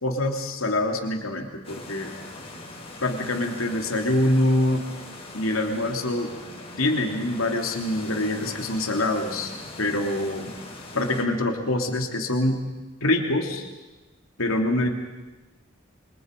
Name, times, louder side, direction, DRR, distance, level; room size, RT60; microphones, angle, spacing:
voice 1, 0.0-2.1 3.0-4.8 5.3-6.3 6.8-9.5 9.8-10.5 10.9-12.6 13.0-13.7 14.4-14.9, left 1 dB, 85° left, 3 dB, 2.9 m, -25 dB
sound 1, 1.6-11.2, left 2 dB, 30° left, 4.4 m, -41 dB
27.5 x 25.5 x 5.3 m, 1.1 s
head